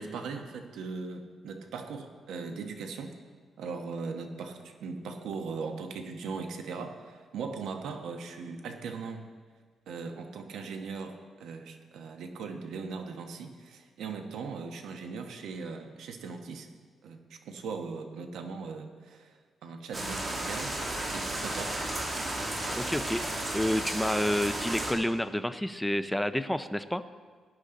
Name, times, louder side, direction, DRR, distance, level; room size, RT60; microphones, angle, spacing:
voice 1, 0.0-3.2 3.6-9.3 9.9-16.7 17.0-20.8 21.1-21.8, right 4 dB, 85° right, 5 dB, 1.2 m, -39 dB
sound 1, 19.9-24.9, right 1 dB, 30° right, 2.4 m, -33 dB
voice 2, 22.5-27.0, left 1 dB, 5° left, 10 dB, 0.5 m, -30 dB
18.5 x 9.8 x 3.9 m, 1.5 s
cardioid pair, 110°, 0 cm